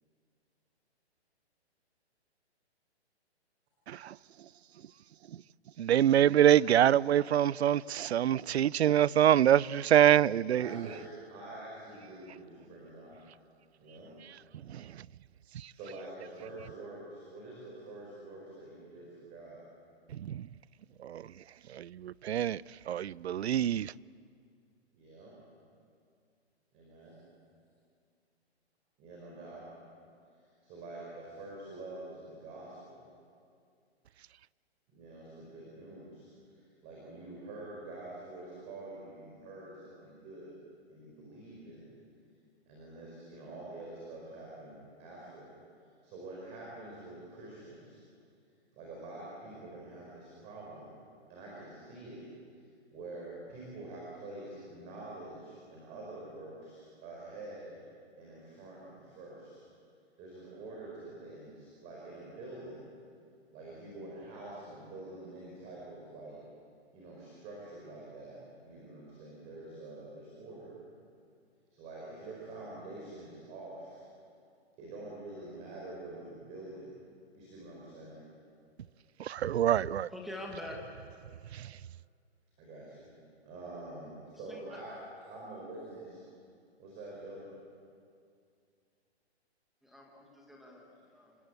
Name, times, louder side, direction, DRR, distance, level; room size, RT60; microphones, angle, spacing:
voice 1, 5.8-10.9 14.7-14.9 15.5-15.7 20.1-20.5 21.0-21.3 21.7-22.6 22.9-23.9 79.2-80.1 81.5-81.7, right 11 dB, 70° right, 0.6 m, -25 dB
voice 2, 10.5-13.1 13.8-14.1 15.7-19.6 24.9-25.3 26.7-27.2 29.0-29.6 30.6-33.0 34.9-36.3 36.5-40.5 40.9-41.9 42.7-45.5 46.0-48.0 48.7-50.9 51.3-52.2 52.9-57.8 58.2-59.6 60.2-62.8 63.5-66.4 66.9-70.7 71.7-74.0 74.8-76.9 77.3-78.2 82.6-83.1 83.4-86.2 86.8-87.5, right 2 dB, 20° right, 4.7 m, -46 dB
voice 3, 80.1-80.8 84.5-84.8 89.8-91.3, left 1 dB, ahead, 1.4 m, -45 dB
27.5 x 20.0 x 8.2 m
hypercardioid pair, 170°, 34 cm